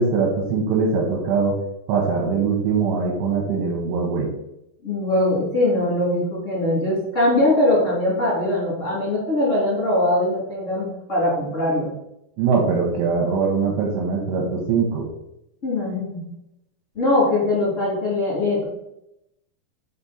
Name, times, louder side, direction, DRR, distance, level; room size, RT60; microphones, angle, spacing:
voice 1, 0.0-1.5 1.9-4.3 12.4-15.0, right 5 dB, 85° right, -2 dB, 3.2 m, -22 dB
voice 2, 4.8-11.9 15.6-16.2 16.9-18.6, left 1 dB, 20° left, -7 dB, 2.3 m, -21 dB
6.0 x 5.1 x 4.2 m, 0.83 s
omnidirectional pair, 4.9 m